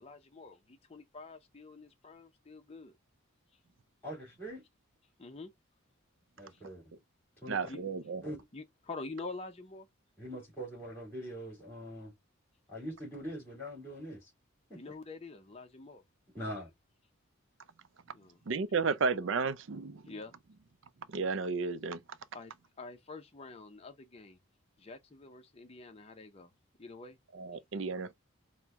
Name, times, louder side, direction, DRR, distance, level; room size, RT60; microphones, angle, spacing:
voice 1, 0.0-2.9 5.2-5.5 7.7-7.8 8.5-9.9 14.7-16.0 18.1-18.4 20.1-20.3 22.3-22.5 22.8-24.4 24.8-26.5 26.8-27.2, left 3 dB, 30° left, 0.6 m, -46 dB
voice 2, 4.0-4.6 6.4-6.8 7.4-7.6 8.2-8.4 10.2-12.1 12.7-14.3 14.7-14.8 16.3-16.7, equal, 10° left, 2.5 m, -42 dB
voice 3, 7.5-8.2 18.5-20.0 21.1-22.0 27.3-28.1, right 4 dB, 65° right, 0.5 m, -33 dB
4.4 x 2.2 x 3.5 m
head